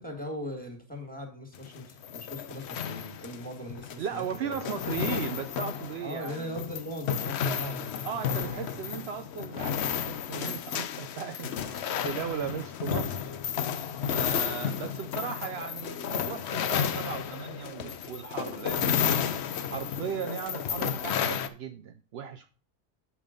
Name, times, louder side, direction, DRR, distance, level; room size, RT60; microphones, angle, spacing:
voice 1, 0.0-4.6 6.0-8.8, equal, 5° left, 2.0 m, -40 dB
sound 1, 1.5-21.5, left 8 dB, 70° left, 0.9 m, -32 dB
voice 2, 4.0-6.6 8.0-13.2 14.1-19.2 19.6-22.5, right 7 dB, 70° right, 0.8 m, -37 dB
8.4 x 5.6 x 5.2 m
omnidirectional pair, 1.2 m